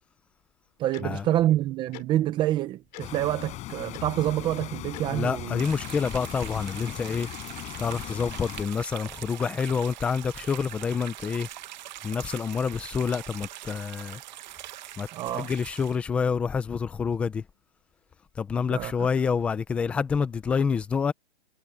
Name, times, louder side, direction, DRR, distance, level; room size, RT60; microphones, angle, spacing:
voice 1, 0.8-5.6 15.1-15.5 18.7-19.1, right 13 dB, 15° right, 0.9 m, -27 dB
Tick-tock, 0.9-1.0 1.9-2.0 2.9-3.1 3.9-4.1 4.9-5.0 5.9-6.0, left 15 dB, 40° left, 4.3 m, -43 dB
sound 1, 3.0-8.6, left 16 dB, 20° left, 7.4 m, -38 dB
voice 2, 5.1-7.3 7.8-11.5 12.0-14.2 15.0-15.1 15.3-17.4 18.4-21.1, left 6 dB, 5° left, 0.5 m, -27 dB
sound 2, 5.6-16.0, right 14 dB, 45° right, 1.6 m, -42 dB
hypercardioid pair, 155°, 32 cm